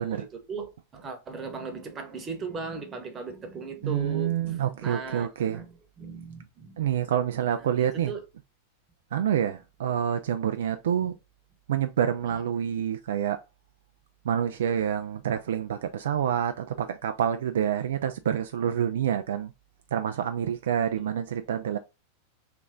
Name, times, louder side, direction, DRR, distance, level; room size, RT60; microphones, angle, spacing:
voice 1, 0.0-5.7 6.0-6.9 8.1-8.2 11.0-11.1, right 4 dB, 20° right, 1.0 m, -37 dB
voice 2, 3.8-5.6 6.8-8.1 9.1-11.2 11.7-13.4 14.2-19.5 19.9-21.8, right 9 dB, 60° right, 0.3 m, -27 dB
3.4 x 2.9 x 3.7 m
figure-of-eight pair, 90°, 0 cm